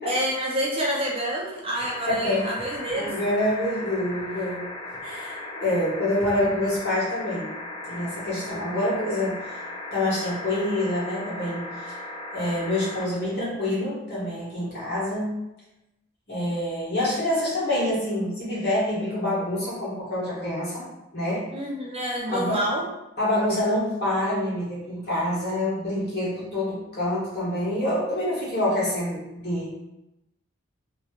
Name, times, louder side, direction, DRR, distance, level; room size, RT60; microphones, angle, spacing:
voice 1, 0.0-3.1 21.5-22.8, right 1 dB, 30° right, -3 dB, 0.6 m, -28 dB
voice 2, 1.7-2.5 2.9-4.7 5.0-7.5 7.8-9.6 9.9-11.9 12.3-15.3 16.3-20.9 21.1-21.5 22.3-22.6 23.2-29.7, left 1 dB, 55° left, -8 dB, 1.4 m, -26 dB
sound 1, 1.8-13.1 14.5-14.6, left 2 dB, 25° left, 0.4 m, -37 dB
3.0 x 2.9 x 2.4 m, 0.92 s
head